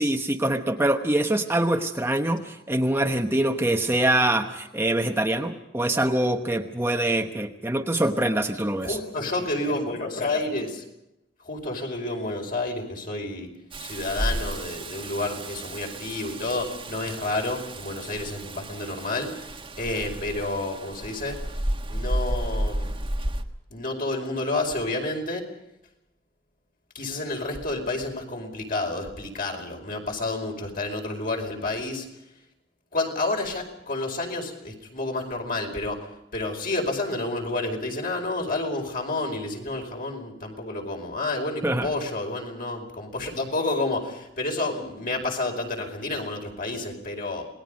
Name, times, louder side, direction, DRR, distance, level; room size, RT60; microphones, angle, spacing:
voice 1, 0.0-9.0 41.6-41.9, right 1 dB, 15° right, 4 dB, 1.1 m, -24 dB
voice 2, 8.8-10.8 11.4-13.5 13.8-21.4 21.9-23.0 23.7-25.5 26.9-32.1 32.9-36.0 36.3-47.5, left 2 dB, 50° left, 2 dB, 5.1 m, -30 dB
Rain, 13.7-23.4, right 1 dB, 30° right, 1.4 m, -32 dB
27.5 x 20.0 x 5.3 m, 0.88 s
head